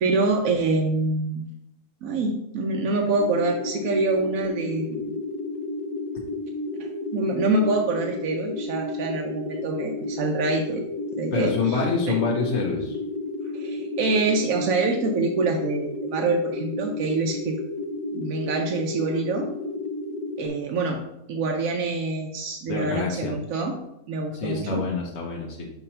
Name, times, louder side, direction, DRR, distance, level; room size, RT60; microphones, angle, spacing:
voice 1, 0.0-1.4 2.0-5.2 7.1-10.8 11.2-12.2 13.5-17.6 18.1-19.5 20.4-21.0 21.3-23.8 24.1-24.8, right 3 dB, 65° right, 1 dB, 1.0 m, -25 dB
sound 1, 3.2-20.5, left 2 dB, 85° left, 1.3 m, -32 dB
voice 2, 11.3-13.0 22.7-23.3 24.3-25.7, left 4 dB, 50° left, -2 dB, 1.0 m, -26 dB
5.8 x 2.9 x 5.5 m, 0.81 s
omnidirectional pair, 1.6 m